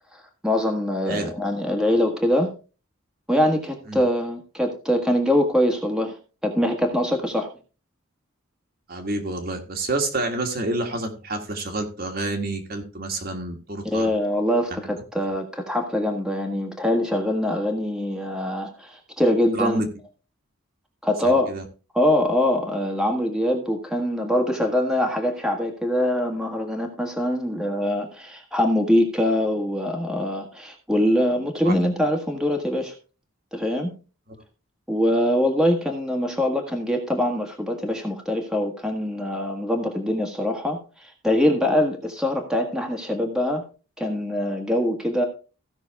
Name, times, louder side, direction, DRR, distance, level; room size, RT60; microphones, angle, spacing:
voice 1, 0.1-2.5 3.3-6.2 6.4-7.5 13.8-19.8 21.0-21.5 21.9-32.9 33.5-33.9 34.9-43.6 44.0-45.3, left 1 dB, 5° right, 2 dB, 1.5 m, -23 dB
voice 2, 8.9-14.1 14.7-14.8 19.5-19.9 21.2-21.6 31.7-31.8, right 2 dB, 45° right, 3 dB, 1.7 m, -28 dB
16.0 x 6.1 x 3.4 m, 0.34 s
head